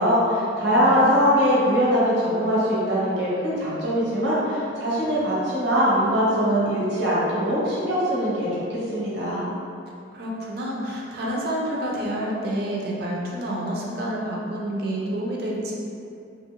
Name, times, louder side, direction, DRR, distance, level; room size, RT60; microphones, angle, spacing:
voice 1, 0.0-9.4, equal, 75° right, -8 dB, 0.9 m, -22 dB
voice 2, 0.7-1.1 10.1-15.7, right 1 dB, 60° right, -3 dB, 0.5 m, -28 dB
3.1 x 2.5 x 2.9 m, 2.5 s
head